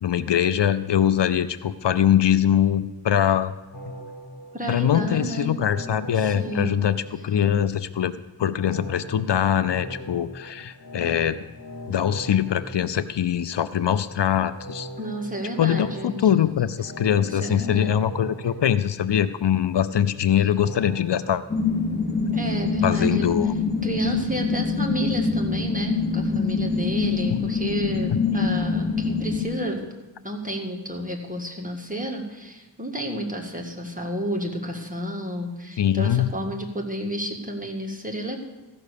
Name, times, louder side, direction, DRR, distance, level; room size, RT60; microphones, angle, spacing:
voice 1, 0.0-3.5 4.7-11.4 11.9-14.9 15.6-21.4 22.8-23.5 27.3-27.4 35.8-36.3, left 9 dB, 75° left, 14 dB, 0.5 m, -22 dB
sound 1, 3.7-7.6 8.5-13.6 14.5-19.6 20.5-21.3, equal, 50° left, 2.9 m, -40 dB
voice 2, 4.5-5.6 6.2-6.8 15.0-16.2 17.2-18.0 22.3-23.4 23.8-29.8 30.2-38.4, equal, 20° right, 1 dB, 1.8 m, -31 dB
sound 2, 21.5-29.4, left 4 dB, 25° left, 1.4 m, -25 dB
14.5 x 6.0 x 6.7 m, 1.1 s
wide cardioid pair, 45°, 43 cm